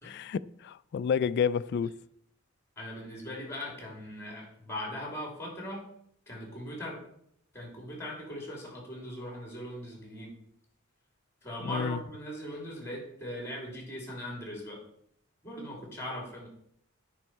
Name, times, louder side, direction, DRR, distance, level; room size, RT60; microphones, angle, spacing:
voice 1, 0.0-1.9 11.6-12.0, left 7 dB, 55° left, 0.3 m, -30 dB
voice 2, 2.8-5.8 6.3-7.0 7.5-10.3 11.4-14.8 15.4-16.5, left 1 dB, 15° left, 2.9 m, -39 dB
9.0 x 5.4 x 4.6 m
head